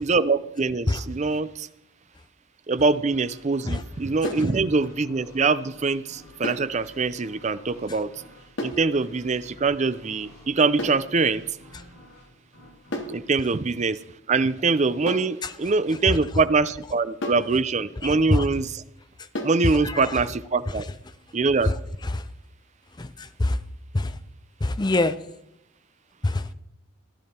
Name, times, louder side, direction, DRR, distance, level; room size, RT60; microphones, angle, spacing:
voice 1, 0.0-1.7 2.7-8.1 8.6-11.4 13.1-14.0 14.3-18.7 19.4-20.9 21.3-21.7, right 4 dB, 35° right, 0.5 m, -23 dB
sound 1, 3.0-14.5, left 1 dB, 85° left, 5.6 m, -51 dB
sound 2, 4.2-4.5 6.4-6.7 8.6-8.9 10.8-11.1 12.9-13.2 15.1-15.4 17.2-17.5 19.3-19.6, left 1 dB, 60° left, 1.6 m, -32 dB
voice 2, 18.0-18.5 19.6-20.2 20.7-20.8 21.6-21.8 22.0-22.3 23.0-23.6 23.9-24.2 24.6-25.2 26.2-26.5, left 2 dB, 20° left, 0.5 m, -25 dB
15.0 x 11.0 x 4.3 m
head